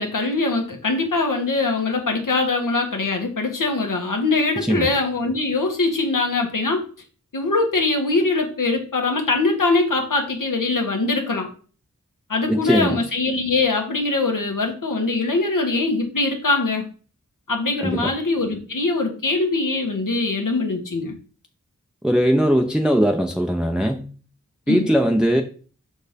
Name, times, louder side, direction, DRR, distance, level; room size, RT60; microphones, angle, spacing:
voice 1, 0.0-6.8 7.3-11.5 12.3-16.9 17.5-21.2 24.7-24.9, left 3 dB, 80° left, 1.5 m, -22 dB
voice 2, 4.6-4.9 12.5-13.0 17.8-18.1 22.0-24.1 24.7-25.4, equal, 5° right, 0.6 m, -20 dB
5.7 x 4.4 x 5.1 m
wide cardioid pair, 60°, 31 cm